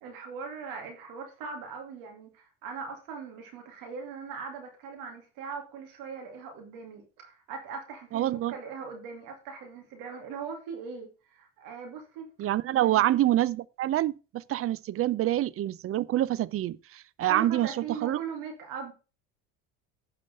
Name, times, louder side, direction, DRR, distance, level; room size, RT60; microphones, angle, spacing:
voice 1, 0.0-13.0 17.3-18.9, right 5 dB, 80° right, 2.7 m, -40 dB
voice 2, 8.1-8.5 12.4-17.8 18.0-18.2, right 13 dB, 45° right, 0.5 m, -26 dB
9.8 x 5.2 x 5.3 m
supercardioid pair, 95°, 32 cm